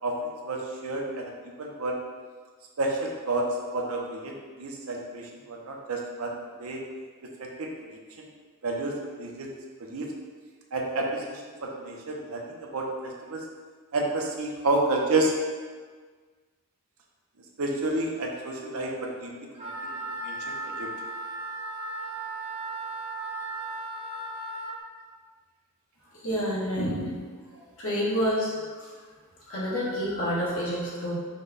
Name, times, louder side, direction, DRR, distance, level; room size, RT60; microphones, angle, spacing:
voice 1, 0.0-1.3 1.6-1.9 2.8-3.4 3.7-4.3 4.6-6.8 7.4-7.7 8.2-8.3 8.6-9.5 9.8-10.1 10.7-13.4 13.9-15.3 17.6-19.7 20.2-20.9, right 2 dB, 70° right, 0 dB, 0.7 m, -30 dB
Wind instrument woodwind instrument, 19.5-24.8, right 2 dB, 25° right, 0.6 m, -36 dB
voice 2, 26.2-27.2 27.8-28.5 28.8-28.9 29.5-31.1, equal, 70° left, -7 dB, 1.4 m, -28 dB
5.2 x 2.2 x 4.0 m, 1.5 s
head